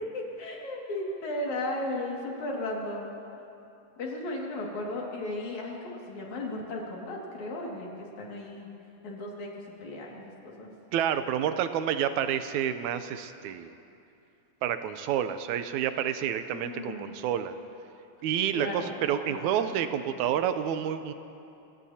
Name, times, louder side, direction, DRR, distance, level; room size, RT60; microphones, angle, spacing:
voice 1, 0.0-3.1 4.0-7.9 8.2-8.7 9.0-10.7 16.5-17.1 18.5-19.8, left 1 dB, 80° left, -2 dB, 3.6 m, -35 dB
voice 2, 10.9-13.7 14.6-17.5 18.2-21.1, right 9 dB, 85° right, 10 dB, 2.1 m, -29 dB
29.5 x 17.0 x 2.8 m, 2.7 s
omnidirectional pair, 3.3 m